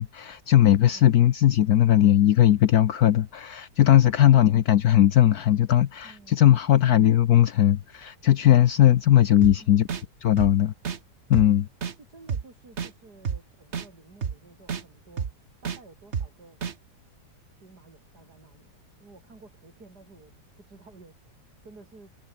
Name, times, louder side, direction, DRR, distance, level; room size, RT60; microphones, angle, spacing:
voice 1, 0.0-9.9 10.2-10.7 11.3-11.7, left 12 dB, 65° left, 1.2 m, -19 dB
voice 2, 0.9-1.2 4.1-4.5 6.0-6.5 9.6-9.9 12.0-15.3 15.6-16.7 17.6-22.2, right 3 dB, 65° right, 4.5 m, -52 dB
sound 1, 9.4-9.5 9.9-10.0 10.4-10.5 10.8-11.0 11.3-11.5 11.8-11.9 12.3-12.4 12.8-12.9 13.3-13.4 13.7-13.9 14.2-14.3 14.7-14.8 15.2-15.3 15.7-15.8 16.1-16.3 16.6-16.7, right 7 dB, 45° right, 1.4 m, -29 dB
omnidirectional pair, 1.9 m